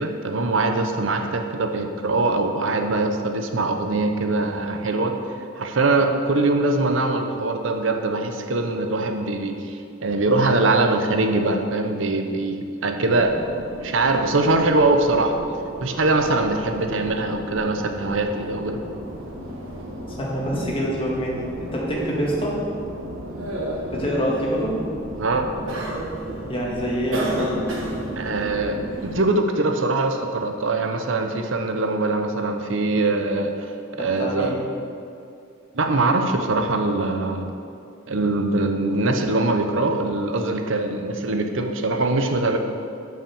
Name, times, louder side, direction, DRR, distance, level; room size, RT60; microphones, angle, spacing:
voice 1, 0.0-5.1 5.6-13.3 13.8-15.4 15.8-18.8 25.2-25.5 28.2-28.8 29.0-33.7 34.0-34.5 35.7-37.5 38.1-42.6, right 2 dB, 70° right, 5 dB, 0.8 m, -22 dB
sound 1, 13.0-29.2, right 1 dB, 90° right, 1.5 m, -33 dB
voice 2, 20.2-22.5 23.9-24.7 26.4-27.6 33.9-34.6, equal, 30° left, -4 dB, 1.9 m, -26 dB
7.3 x 5.9 x 7.0 m, 2.5 s
head